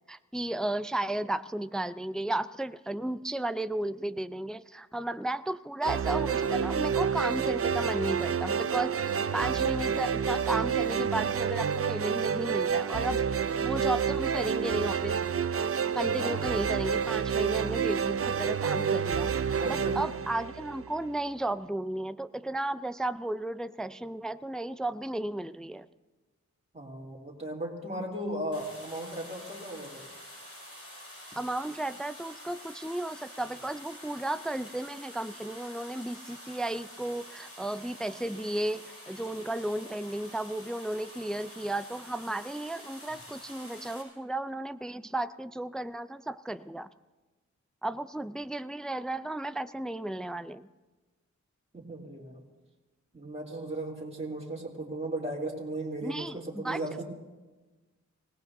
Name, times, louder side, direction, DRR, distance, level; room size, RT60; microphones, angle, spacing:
voice 1, 0.1-13.2 13.6-15.5 15.9-25.9 31.4-46.9 47.8-50.7 56.0-57.0, right 1 dB, ahead, 12 dB, 0.4 m, -34 dB
sound 1, 5.8-21.1, right 7 dB, 50° right, 0.5 m, -29 dB
voice 2, 16.2-16.5 19.6-20.0 26.7-30.0 51.7-52.4 53.1-57.0, right 1 dB, 20° right, -5 dB, 3.0 m, -36 dB
sound 2, 28.5-44.0, left 1 dB, 50° left, 6.2 m, -48 dB
26.0 x 18.0 x 2.7 m, 1.2 s
wide cardioid pair, 75°, 30 cm